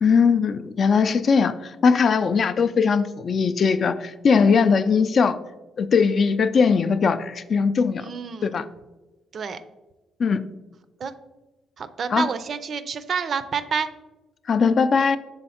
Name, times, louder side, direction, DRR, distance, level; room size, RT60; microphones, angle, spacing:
voice 1, 0.0-5.4 5.8-8.1 8.4-8.7 10.2-10.4 12.1-12.3 14.5-15.2, left 5 dB, 50° left, 11 dB, 0.3 m, -20 dB
voice 2, 8.0-8.5 9.3-9.6 11.0-11.1 11.8-13.9, right 6 dB, 50° right, 12 dB, 0.4 m, -28 dB
6.4 x 3.5 x 4.2 m, 1.1 s
cardioid pair, 90°, 0 cm